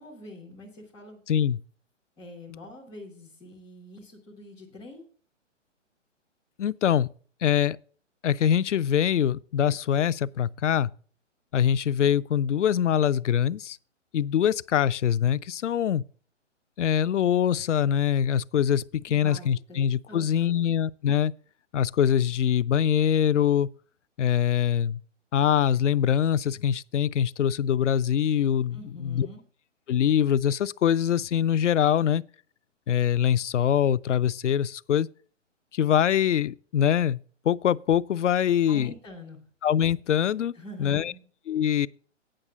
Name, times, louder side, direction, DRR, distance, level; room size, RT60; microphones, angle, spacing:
voice 1, 0.0-1.5 2.2-5.0 19.1-20.7 28.7-29.4 38.7-39.4 40.5-41.2, left 2 dB, 5° left, 0.3 m, -45 dB
voice 2, 1.3-1.6 6.6-7.1 7.4-7.8 8.2-10.9 11.5-13.8 14.1-16.0 16.8-21.3 21.7-23.7 24.2-25.0 25.3-29.3 29.9-32.2 32.9-35.1 35.7-37.2 37.4-38.9 39.6-40.5 40.8-41.1 41.5-41.9, left 9 dB, 70° left, 0.5 m, -23 dB
8.8 x 5.9 x 6.6 m
figure-of-eight pair, 130°, 37 cm